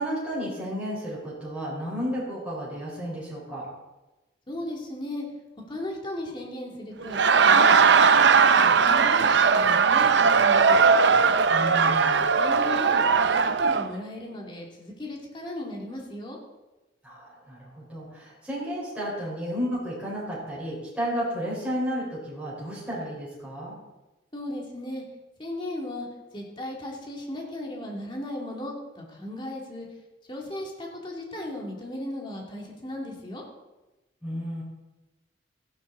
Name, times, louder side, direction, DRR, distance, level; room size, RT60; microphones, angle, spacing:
voice 1, 0.0-3.7 11.5-12.3 17.0-23.8 34.2-34.6, equal, 5° right, -7 dB, 5.0 m, -32 dB
voice 2, 4.5-5.2 5.7-7.2 7.5-10.8 12.4-13.0 13.3-16.4 24.3-25.0 25.4-26.1 26.3-29.9 30.3-33.4, left 1 dB, 25° left, -2 dB, 2.9 m, -36 dB
Laughter, 7.0-13.9, right 5 dB, 65° right, 0.6 m, -19 dB
15.5 x 11.5 x 4.1 m, 1.1 s
head